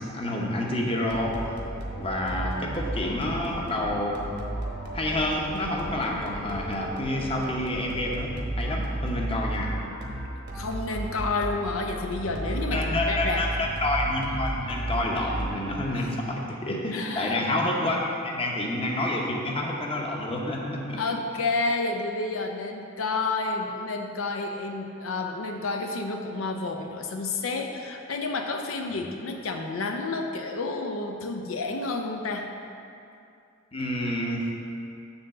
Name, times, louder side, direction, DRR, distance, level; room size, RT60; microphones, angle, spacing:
voice 1, 0.0-1.4 2.0-4.2 4.9-9.7 12.7-21.0 28.9-29.0 33.7-34.5, left 1 dB, 30° left, -1 dB, 0.8 m, -28 dB
sound 1, 1.1-16.0, right 1 dB, 55° right, 1.0 m, -34 dB
voice 2, 10.5-13.4 15.9-16.1 16.9-17.4 21.0-32.5, left 3 dB, 85° left, 3 dB, 0.6 m, -30 dB
7.1 x 3.9 x 6.5 m, 2.6 s
head